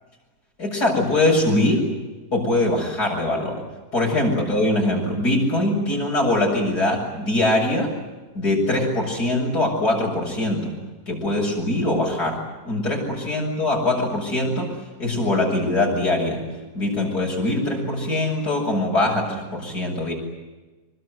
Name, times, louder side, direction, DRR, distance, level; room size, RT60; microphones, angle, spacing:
voice 1, 0.6-1.9 2.3-3.6 3.9-7.9 8.3-10.7 11.1-14.7 15.0-16.4 16.7-20.1, left 1 dB, 85° left, -1 dB, 7.7 m, -22 dB
25.5 x 23.5 x 9.5 m, 1.2 s
omnidirectional pair, 1.7 m